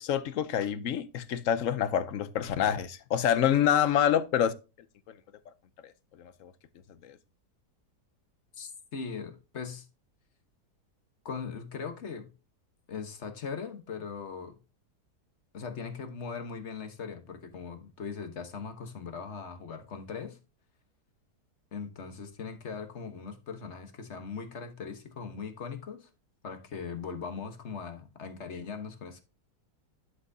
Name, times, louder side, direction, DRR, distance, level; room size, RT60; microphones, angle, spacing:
voice 1, 0.0-4.5 5.1-5.2 5.8-6.5 7.0-7.2, left 9 dB, 65° left, 0.9 m, -27 dB
voice 2, 8.5-9.9 11.2-12.3 12.9-14.6 15.5-20.4 21.7-26.1 26.4-29.2, left 5 dB, 45° left, 1.3 m, -40 dB
11.0 x 6.0 x 2.7 m
omnidirectional pair, 1.7 m